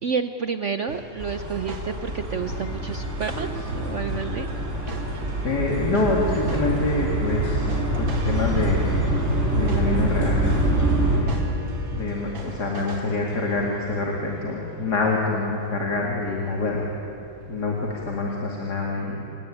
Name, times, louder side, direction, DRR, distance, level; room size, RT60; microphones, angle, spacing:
voice 1, 0.0-4.5, right 5 dB, 60° right, 9 dB, 0.8 m, -30 dB
sound 1, 0.9-14.0, right 2 dB, 85° right, 3.0 m, -41 dB
sound 2, 1.2-11.2, right 1 dB, 35° right, 5.0 m, -25 dB
Bell / Tick-tock, 1.9-18.2, left 1 dB, 30° left, 5.9 m, -45 dB
voice 2, 5.4-7.7 8.0-8.9 9.5-11.4 11.9-16.9 17.5-19.3, left 2 dB, 55° left, -1 dB, 2.9 m, -26 dB
28.5 x 18.0 x 9.9 m, 2.7 s
omnidirectional pair, 2.1 m